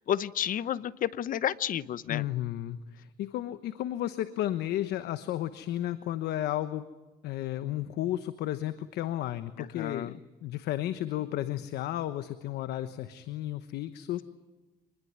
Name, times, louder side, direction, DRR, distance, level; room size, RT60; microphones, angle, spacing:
voice 1, 0.1-2.2 9.7-10.1, left 10 dB, 55° left, 17 dB, 0.9 m, -31 dB
voice 2, 2.1-6.8 7.2-10.1 10.4-14.2, left 13 dB, 75° left, 11 dB, 1.1 m, -33 dB
26.0 x 21.0 x 9.5 m, 1.1 s
cardioid pair, 110°, 17 cm